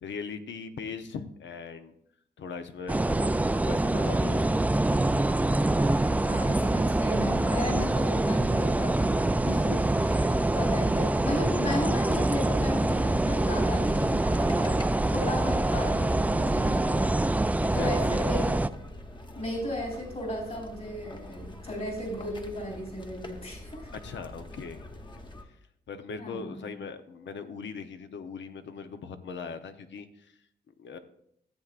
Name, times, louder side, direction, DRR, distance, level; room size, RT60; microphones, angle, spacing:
voice 1, 0.0-1.9 2.4-3.0 3.6-4.5 17.6-18.1 24.0-24.9 25.9-30.1 30.8-31.0, left 5 dB, 75° left, 9 dB, 0.8 m, -39 dB
sound 1, 2.9-18.7, right 2 dB, 10° right, 0.3 m, -25 dB
voice 2, 6.2-17.3 17.7-18.6 19.4-23.9 26.2-26.7, left 1 dB, 50° left, 0 dB, 4.1 m, -35 dB
sound 2, 14.3-25.5, left 1 dB, 25° left, 1.1 m, -45 dB
14.0 x 8.0 x 2.5 m, 0.73 s
cardioid pair, 70°, 19 cm